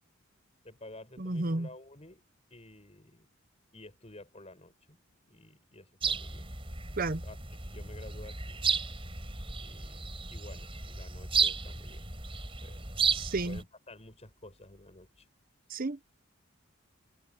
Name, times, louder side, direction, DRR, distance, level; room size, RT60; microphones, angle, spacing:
voice 1, 0.6-2.2 2.5-3.3 3.7-5.0 5.2-6.5 7.2-8.6 9.6-12.0 12.6-12.9 13.4-15.3, left 1 dB, 30° left, 7.8 m, -52 dB
voice 2, 1.2-1.7 7.0-7.2 13.1-13.6 15.7-16.1, right 2 dB, 45° right, 0.9 m, -32 dB
sound 1, 6.0-13.6, right 5 dB, 25° right, 6.5 m, -33 dB
head